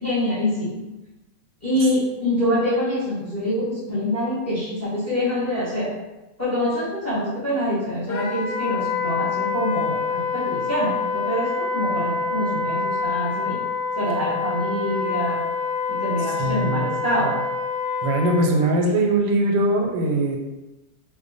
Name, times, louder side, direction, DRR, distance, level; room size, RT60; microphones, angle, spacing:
voice 1, 0.0-0.8 1.6-5.9 6.4-13.6 13.9-15.4 15.9-17.4, left 1 dB, 15° left, -10 dB, 0.7 m, -25 dB
Wind instrument woodwind instrument, 8.1-18.5, left 4 dB, 75° left, 1.2 m, -26 dB
voice 2, 16.4-16.9 18.0-20.4, right 1 dB, 85° right, 1 dB, 1.3 m, -21 dB
3.0 x 2.1 x 3.9 m, 1.0 s
omnidirectional pair, 1.9 m